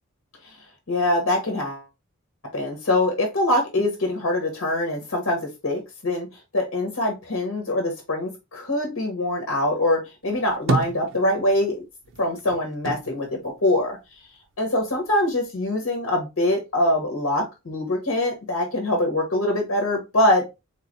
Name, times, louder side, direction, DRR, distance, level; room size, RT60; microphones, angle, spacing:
voice 1, 0.9-1.8 2.5-6.3 6.5-11.8 12.2-14.0 14.6-20.5, left 1 dB, 85° left, 2 dB, 1.3 m, -24 dB
sound 1, 10.2-11.7 12.0-14.4 14.8-15.7, right 3 dB, 60° right, 0.5 m, -30 dB
4.0 x 3.2 x 2.6 m, 0.25 s
head